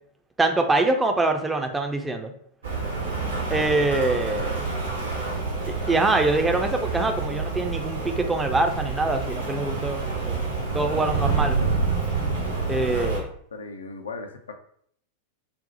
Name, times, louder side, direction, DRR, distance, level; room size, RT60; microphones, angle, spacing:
voice 1, 0.4-2.3 3.5-4.6 5.9-11.6 12.7-13.3, right 2 dB, 10° right, 5 dB, 0.4 m, -24 dB
Rain, 2.6-13.2, right 4 dB, 70° right, 0.9 m, -28 dB
voice 2, 12.6-13.0 13.5-14.6, left 3 dB, 70° left, 5 dB, 0.4 m, -38 dB
4.0 x 2.0 x 2.8 m, 0.64 s
figure-of-eight pair, 90°, 0 cm